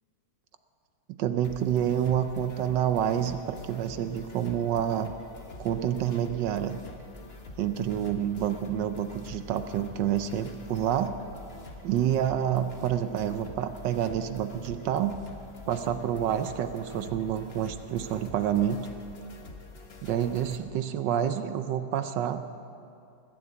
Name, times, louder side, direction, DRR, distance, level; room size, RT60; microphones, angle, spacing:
voice 1, 1.2-5.1 5.6-6.8 7.6-11.1 11.8-15.1 15.7-18.9 20.0-22.4, right 10 dB, 70° right, 10 dB, 1.2 m, -28 dB
sound 1, 1.4-20.6, left 3 dB, 35° left, 1.2 m, -46 dB
20.5 x 8.1 x 8.0 m, 2.5 s
omnidirectional pair, 2.3 m